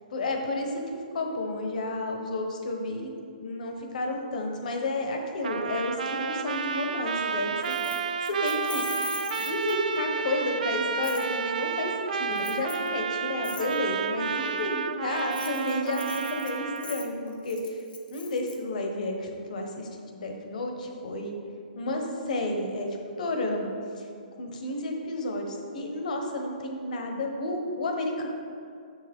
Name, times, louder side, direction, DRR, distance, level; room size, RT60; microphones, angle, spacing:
voice 1, 0.1-3.1 3.4-7.7 8.2-8.8 9.4-16.0 16.3-17.8 18.1-21.3 21.7-24.1 24.4-28.3, left 1 dB, 55° left, 3 dB, 1.1 m, -31 dB
Trumpet, 5.4-17.1, right 5 dB, 65° right, 0.4 m, -31 dB
Keys jangling, 7.6-10.0 11.0-11.3 12.4-12.9 13.4-13.7 15.2-18.6, left 5 dB, 90° left, 1.1 m, -42 dB
7.3 x 6.4 x 3.6 m, 2.4 s
hypercardioid pair, 170°, 5 cm